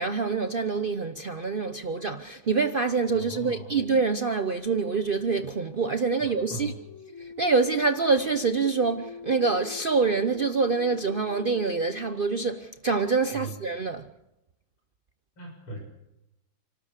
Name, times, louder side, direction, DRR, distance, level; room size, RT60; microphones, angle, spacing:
voice 1, 0.0-6.7 7.2-14.1, right 4 dB, 70° right, 0.5 m, -26 dB
voice 2, 3.1-3.8 6.2-6.7 13.3-13.6 15.4-15.8, right 1 dB, 75° left, 7.9 m, -39 dB
sound 1, 5.6-12.9, left 5 dB, 40° left, 4.0 m, -44 dB
28.5 x 13.5 x 8.3 m
omnidirectional pair, 2.3 m